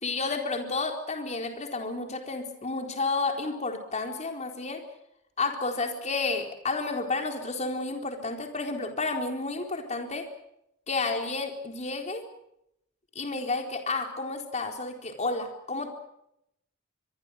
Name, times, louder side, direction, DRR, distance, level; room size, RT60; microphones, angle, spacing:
voice 1, 0.0-4.8 5.4-10.3 10.9-12.3 13.2-15.9, left 3 dB, 35° left, 4 dB, 4.1 m, -31 dB
25.0 x 22.5 x 6.5 m, 0.79 s
head